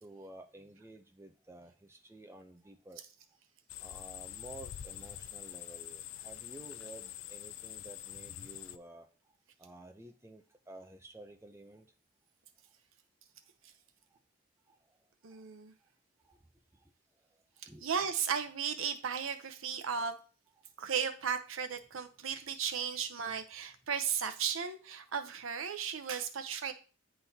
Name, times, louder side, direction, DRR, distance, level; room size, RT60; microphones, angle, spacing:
voice 1, 0.0-3.0 3.8-9.1 9.6-11.9 14.7-14.8 15.3-15.4 16.3-16.4 17.7-17.9, right 2 dB, 15° right, 6 dB, 0.5 m, -52 dB
sound 1, 3.7-8.8, left 11 dB, 80° left, 0.3 m, -45 dB
voice 2, 15.2-15.7 17.6-20.2 20.8-26.7, right 7 dB, 85° right, 8 dB, 0.7 m, -35 dB
9.6 x 3.9 x 2.8 m, 0.37 s
head